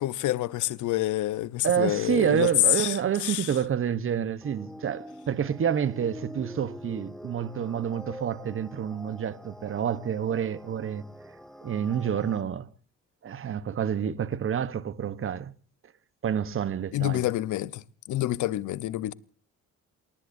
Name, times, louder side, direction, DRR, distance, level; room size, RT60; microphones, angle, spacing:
voice 1, 0.0-3.5 16.9-17.8 18.1-19.1, left 15 dB, 80° left, 0.8 m, -27 dB
voice 2, 1.6-11.0 11.6-12.7 13.2-15.5 16.2-17.3, right 8 dB, 45° right, 1.0 m, -28 dB
sound 1, 4.4-12.4, equal, ahead, 1.8 m, -45 dB
28.5 x 19.0 x 2.6 m
cardioid pair, 90°, 30 cm